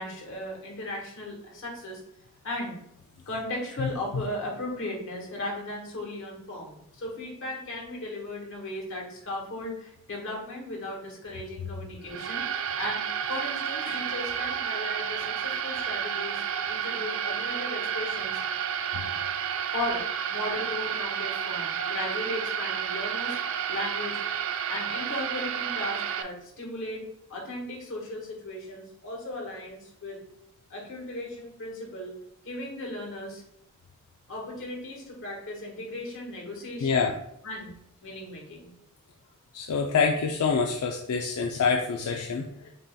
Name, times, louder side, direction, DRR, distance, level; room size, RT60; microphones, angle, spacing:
voice 1, 0.0-2.0 2.4-2.8 3.3-13.0 13.3-18.4 19.7-20.0 20.3-23.4 23.7-24.2 24.7-27.0 27.3-30.2 30.7-32.2 32.4-33.4 34.3-37.1 37.4-37.7 38.0-38.7, left 1 dB, 65° left, -1 dB, 1.4 m, -36 dB
sound 1, 12.1-26.2, right 8 dB, 65° right, 0.4 m, -31 dB
voice 2, 36.8-37.1 39.5-42.7, left 5 dB, 90° left, 2 dB, 0.4 m, -26 dB
7.4 x 2.7 x 2.2 m, 0.74 s
head